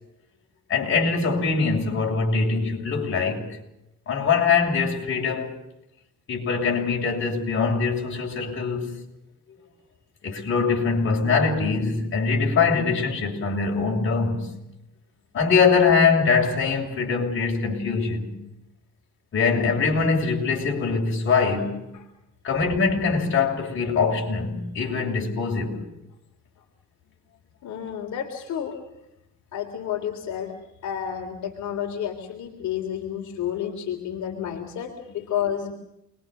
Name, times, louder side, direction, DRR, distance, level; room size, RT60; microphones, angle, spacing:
voice 1, 0.7-3.6 4.1-5.5 6.3-8.9 10.2-14.5 15.3-18.3 19.3-21.9 22.4-25.8, left 5 dB, 40° left, 7.1 m, -23 dB
voice 2, 27.6-28.8 29.5-30.5 30.8-35.7, left 9 dB, 65° left, 3.7 m, -30 dB
28.5 x 22.5 x 6.7 m
cardioid pair, 155°, 31 cm